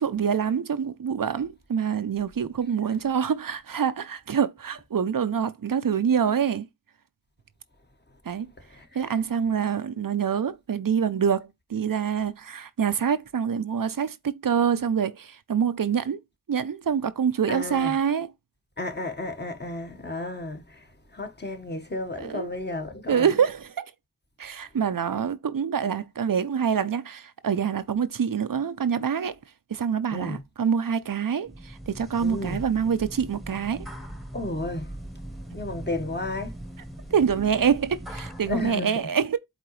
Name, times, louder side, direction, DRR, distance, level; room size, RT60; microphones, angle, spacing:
voice 1, 0.0-6.7 8.3-8.5 8.9-16.2 16.5-18.3 22.2-22.5 23.1-23.9 24.4-29.4 29.7-33.9 37.1-39.4, right 7 dB, 90° right, 0.6 m, -26 dB
voice 2, 17.5-17.9 18.8-20.6 21.1-23.3 30.1-30.4 32.2-32.6 34.3-34.9 35.5-36.5 38.5-39.0, left 2 dB, 30° left, 1.5 m, -32 dB
sound 1, 31.4-38.7, right 1 dB, ahead, 1.1 m, -40 dB
8.0 x 3.8 x 3.1 m
wide cardioid pair, 45°, 32 cm